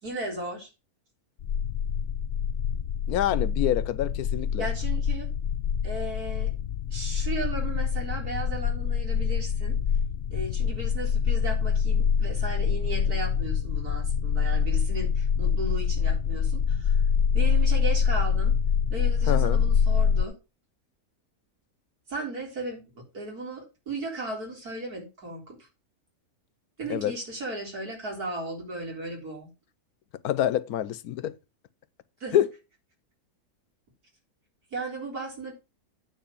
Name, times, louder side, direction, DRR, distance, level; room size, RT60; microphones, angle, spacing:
voice 1, 0.0-0.7 4.6-5.3 5.8-6.5 6.9-9.8 10.3-17.0 17.3-18.6 18.9-20.3 22.1-22.8 23.1-25.7 26.8-29.5 32.2-32.4 34.7-35.5, right 2 dB, 75° right, 4.4 m, -36 dB
sound 1, 1.4-20.2, left 7 dB, 60° left, 0.9 m, -25 dB
voice 2, 3.1-4.7 19.3-19.6 26.9-27.1 30.2-31.3 32.3-32.5, left 11 dB, 80° left, 1.2 m, -26 dB
9.3 x 4.7 x 7.0 m
omnidirectional pair, 1.6 m